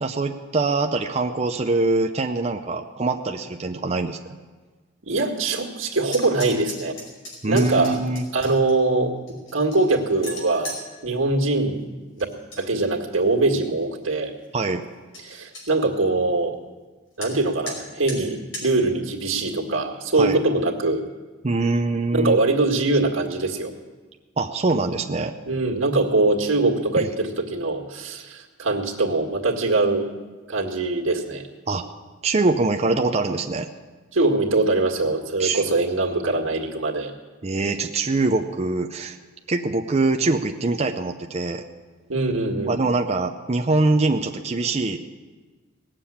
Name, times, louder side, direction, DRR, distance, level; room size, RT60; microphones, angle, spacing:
voice 1, 0.0-4.2 7.4-8.2 14.5-14.9 20.1-20.4 21.4-22.4 24.4-25.4 27.0-27.1 31.7-31.9 32.2-33.7 35.4-35.6 37.4-39.2 39.5-41.6 42.7-45.0, right 3 dB, 35° right, 4 dB, 0.6 m, -23 dB
voice 2, 5.0-7.0 7.5-8.0 8.3-9.2 9.5-10.7 11.0-11.8 12.2-12.3 12.6-14.3 15.2-16.5 17.2-21.0 22.1-23.7 25.5-30.1 30.5-31.4 34.1-37.1 42.1-42.8, right 2 dB, 90° right, 1 dB, 1.9 m, -22 dB
sound 1, 6.1-8.7 9.3-10.8 12.2-12.6 13.0-13.5 14.0-14.1 14.4-14.5 14.8-14.9 15.1-15.6 17.2-17.3 17.7-17.8 18.1-18.2 18.5-18.7, left 1 dB, 85° left, 5.2 m, -36 dB
18.0 x 7.6 x 8.6 m, 1.3 s
head